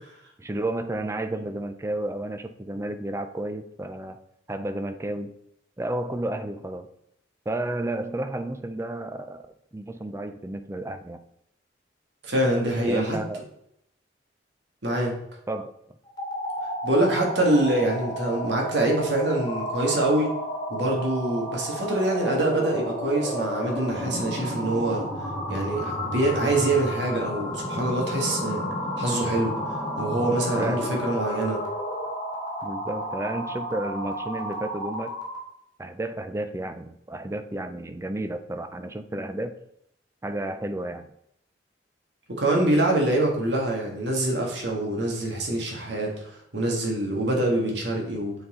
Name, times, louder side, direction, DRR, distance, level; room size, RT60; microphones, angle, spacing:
voice 1, 0.4-4.2 4.5-5.3 5.8-6.9 7.5-9.5 9.7-11.2 12.9-13.4 15.5-15.7 30.6-30.9 32.6-35.1 35.8-39.5 40.2-41.1, right 1 dB, 15° right, 9 dB, 0.4 m, -31 dB
voice 2, 12.2-13.2 14.8-15.1 16.8-20.3 20.7-25.1 25.5-28.7 29.0-29.5 30.0-31.6 42.4-48.3, right 1 dB, 75° right, 0 dB, 1.7 m, -25 dB
sound 1, 16.1-35.5, equal, 20° left, 1.5 m, -32 dB
7.0 x 4.2 x 3.7 m, 0.77 s
head